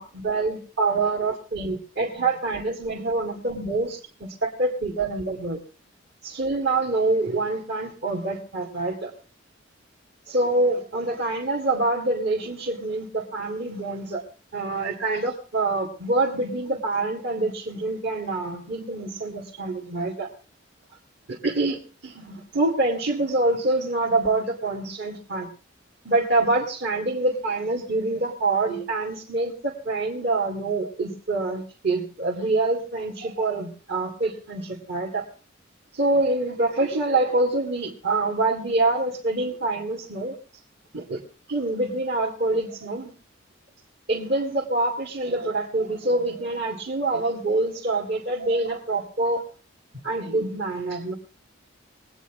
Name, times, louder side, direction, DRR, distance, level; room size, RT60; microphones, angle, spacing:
voice 1, 0.0-5.6 6.2-9.1 10.3-14.2 14.5-20.3 21.3-25.5 26.0-35.3 35.9-40.4 40.9-41.2 41.5-43.1 44.1-49.4 50.0-51.1, right 2 dB, 55° right, -2 dB, 2.1 m, -26 dB
22.5 x 9.2 x 3.6 m, 0.37 s
head